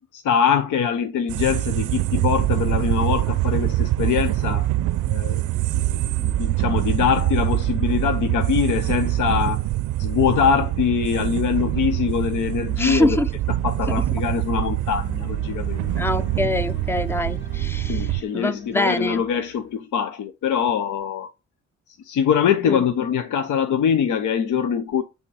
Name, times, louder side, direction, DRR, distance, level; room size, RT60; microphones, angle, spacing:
voice 1, 0.1-4.7 5.1-5.4 5.7-9.6 10.0-13.2 13.6-15.8 17.9-21.3 21.9-25.0, left 7 dB, 90° left, 0.8 m, -23 dB
sound 1, 1.3-18.2, right 15 dB, 80° right, 0.5 m, -24 dB
voice 2, 12.7-13.3 16.0-18.1 18.3-19.2 22.7-22.8, left 1 dB, 10° left, 0.4 m, -24 dB
sound 2, 14.3-14.5 15.0-19.8, left 6 dB, 35° left, 1.2 m, -41 dB
8.6 x 3.8 x 4.8 m
cardioid pair, 160°, 30 cm